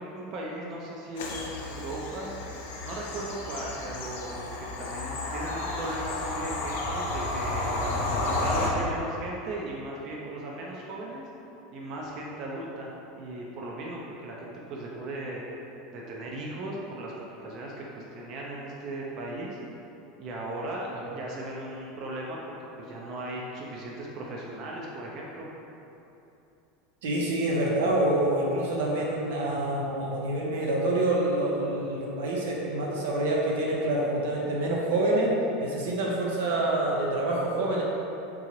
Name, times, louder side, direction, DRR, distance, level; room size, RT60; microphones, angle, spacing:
voice 1, 0.0-2.3 2.6-7.7 8.3-11.2 11.7-15.7 15.9-19.6 20.2-25.5, right 1 dB, 40° right, -3 dB, 0.4 m, -37 dB
Bird vocalization bird call bird song / Train, 1.2-8.7, left 2 dB, 90° left, 0.5 m, -32 dB
voice 2, 27.0-35.3 35.6-37.8, right 1 dB, 90° right, -3 dB, 0.7 m, -27 dB
3.7 x 2.8 x 3.0 m, 2.9 s
supercardioid pair, 155°, 0 cm